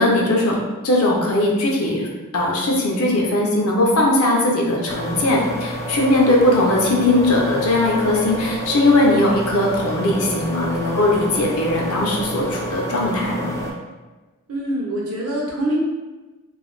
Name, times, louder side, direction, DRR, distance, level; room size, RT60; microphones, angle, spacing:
voice 1, 0.0-2.1 2.3-13.5, left 1 dB, 70° left, -2 dB, 0.6 m, -19 dB
sound 1, 4.9-13.7, equal, 15° left, 0.3 m, -29 dB
voice 2, 14.5-15.7, right 1 dB, 70° right, -4 dB, 0.6 m, -24 dB
2.4 x 2.3 x 3.1 m, 1.2 s
head